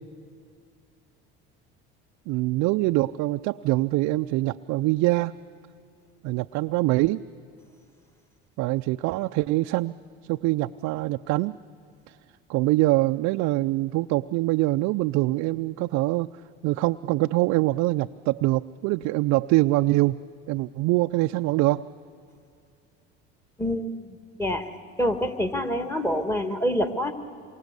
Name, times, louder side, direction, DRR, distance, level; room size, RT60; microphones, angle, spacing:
voice 1, 2.3-5.3 6.2-7.2 8.6-9.9 10.3-11.6 12.5-16.3 16.6-20.2 20.5-21.9, right 19 dB, 60° right, 7 dB, 0.5 m, -24 dB
voice 2, 23.6-24.7 25.0-27.1, equal, 10° left, 8 dB, 1.9 m, -27 dB
27.0 x 24.5 x 8.3 m, 2.4 s
hypercardioid pair, 75°, 31 cm